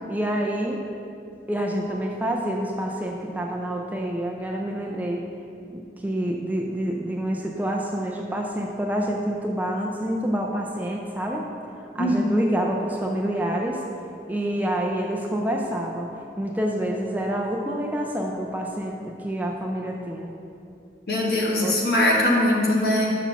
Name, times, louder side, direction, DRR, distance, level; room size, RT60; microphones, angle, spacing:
voice 1, 0.1-0.8 1.5-5.2 5.7-11.5 11.9-13.8 14.3-16.1 16.4-20.3 21.6-21.7, right 1 dB, 10° right, 0 dB, 0.4 m, -27 dB
voice 2, 12.0-12.3 21.1-23.2, left 1 dB, 55° left, -2 dB, 1.3 m, -21 dB
5.9 x 5.9 x 5.8 m, 2.6 s
head